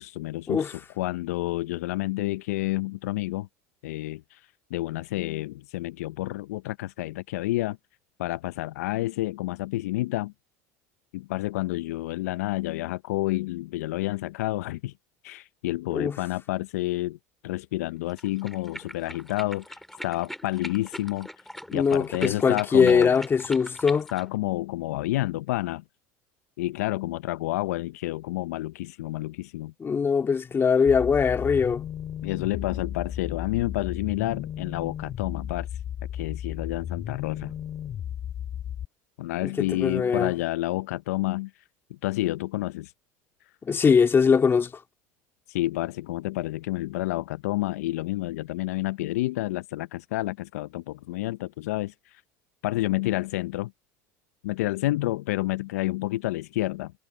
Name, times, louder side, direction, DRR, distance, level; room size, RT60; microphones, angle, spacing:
voice 1, 0.0-3.5 3.8-4.4 4.7-7.8 8.2-10.3 11.1-14.9 15.2-17.2 17.4-21.3 21.7-23.2 24.1-25.8 26.6-29.7 32.2-35.7 36.1-37.5 39.2-41.5 41.9-42.9 45.5-52.2 52.6-53.7 54.4-56.9, left 17 dB, 80° left, 0.6 m, -29 dB
sound 1, 18.1-24.3, left 1 dB, 5° left, 2.9 m, -41 dB
voice 2, 21.7-24.1 29.8-31.8 39.4-40.3 43.7-44.7, left 6 dB, 25° left, 2.0 m, -21 dB
sound 2, 30.9-38.9, left 10 dB, 45° left, 2.7 m, -34 dB
hypercardioid pair, 85°, 8 cm